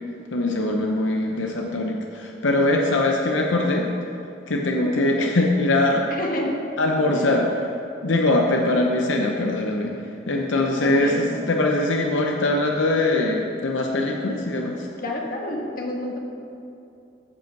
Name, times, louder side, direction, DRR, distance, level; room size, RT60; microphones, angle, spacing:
voice 1, 0.3-3.9 4.5-6.1 6.8-7.5 8.0-9.9 10.3-14.8, left 2 dB, 80° left, 1 dB, 0.8 m, -22 dB
voice 2, 6.1-6.6 7.1-7.2 10.5-11.3 12.9-13.1 14.1-14.3 15.0-16.2, left 1 dB, 45° left, 0 dB, 1.5 m, -30 dB
13.5 x 5.3 x 5.9 m, 2.7 s
head